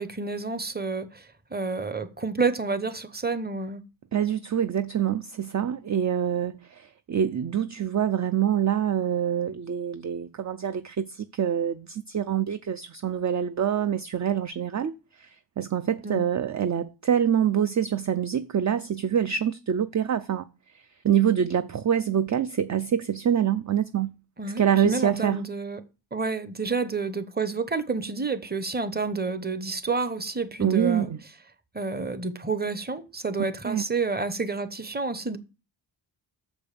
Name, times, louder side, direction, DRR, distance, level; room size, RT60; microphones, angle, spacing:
voice 1, 0.0-3.8 16.0-16.2 24.4-25.8 26.1-31.1 31.7-35.4, right 4 dB, 20° right, 0.8 m, -29 dB
voice 2, 4.1-14.9 15.2-15.3 15.6-20.4 21.0-24.1 24.6-25.4 30.6-31.2 33.7-33.8, right 9 dB, 40° right, 0.4 m, -25 dB
6.9 x 5.3 x 6.7 m
wide cardioid pair, 105°, 47 cm